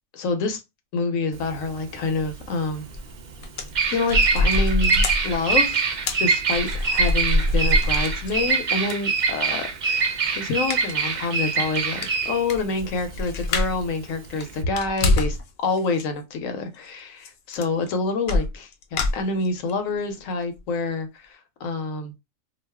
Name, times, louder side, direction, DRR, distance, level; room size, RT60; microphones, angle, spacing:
voice 1, 0.1-0.6 0.9-2.9 3.9-5.8 6.2-22.2, left 3 dB, 80° left, 1.1 m, -27 dB
Bird vocalization bird call bird song, 1.3-14.6, right 5 dB, 80° right, 0.4 m, -24 dB
sound 1, 2.9-3.1 3.4-8.5 8.9-9.0 10.7-11.0 11.3-11.4 11.8-11.9 12.0-13.9 14.2-15.4 15.8-16.1 17.2-17.3 17.5-17.9 18.3-19.7 20.2-20.3 20.6-20.7, left 2 dB, 60° left, 0.7 m, -25 dB
2.4 x 2.3 x 3.4 m
omnidirectional pair, 1.4 m